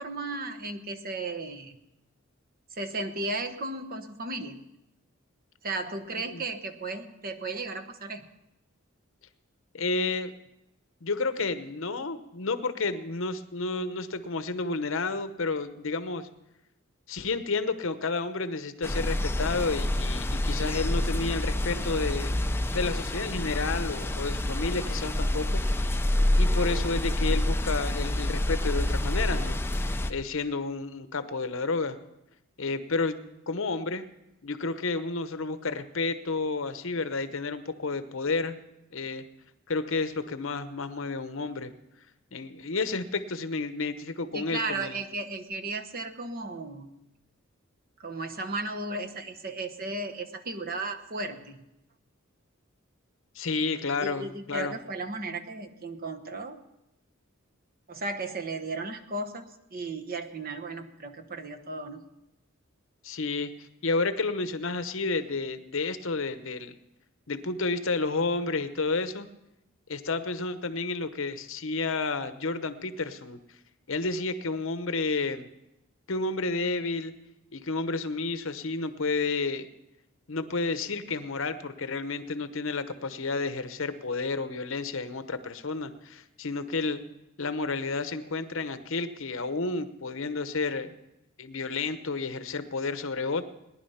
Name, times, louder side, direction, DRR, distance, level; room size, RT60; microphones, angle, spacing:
voice 1, 0.0-1.8 2.7-4.6 5.6-8.3 44.3-47.0 48.0-51.7 54.0-56.6 57.9-62.0, right 2 dB, 45° right, 6 dB, 1.1 m, -35 dB
voice 2, 9.7-10.3 11.0-16.3 17.1-22.3 22.7-25.6 26.4-29.6 30.1-32.0 32.6-34.1 34.4-38.6 38.9-39.2 39.7-41.7 42.3-45.0 53.4-54.7 63.0-63.5 63.8-66.7 67.3-69.3 69.9-73.4 73.9-75.5 76.1-77.1 77.5-79.7 80.3-87.0 87.4-90.9 91.4-93.4, left 3 dB, 65° left, 11 dB, 0.9 m, -31 dB
sound 1, 18.8-30.1, left 1 dB, 10° left, 0.5 m, -27 dB
19.0 x 10.5 x 5.6 m, 0.89 s
head